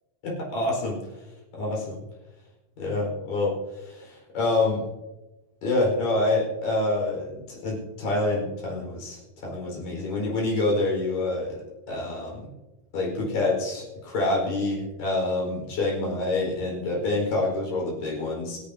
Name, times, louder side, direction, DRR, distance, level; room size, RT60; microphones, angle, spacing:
voice 1, 0.2-1.0 1.5-2.0 2.8-4.8 5.6-11.6 11.9-12.5 12.9-18.6, left 2 dB, 65° left, -3 dB, 6.4 m, -27 dB
26.0 x 10.5 x 2.8 m, 1.1 s
omnidirectional pair, 4.2 m